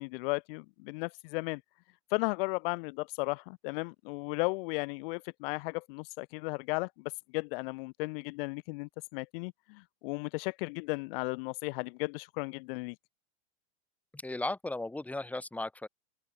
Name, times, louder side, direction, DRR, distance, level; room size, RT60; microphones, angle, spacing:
voice 1, 0.0-1.6 2.1-13.0, left 27 dB, 60° left, 2.1 m, -35 dB
voice 2, 14.1-15.9, left 2 dB, 5° left, 1.7 m, -36 dB
open air
supercardioid pair, 130°, 32 cm